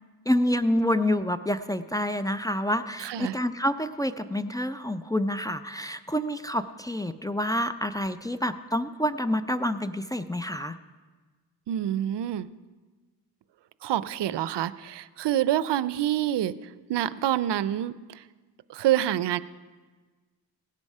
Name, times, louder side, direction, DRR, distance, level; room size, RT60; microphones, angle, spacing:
voice 1, 0.3-10.8, left 1 dB, 10° left, 8 dB, 0.4 m, -28 dB
voice 2, 3.0-3.3 11.7-12.5 13.8-16.5 16.9-17.9 18.7-19.4, right 12 dB, 85° right, 16 dB, 0.5 m, -26 dB
17.0 x 8.2 x 5.4 m, 1.4 s
wide cardioid pair, 100°, 41 cm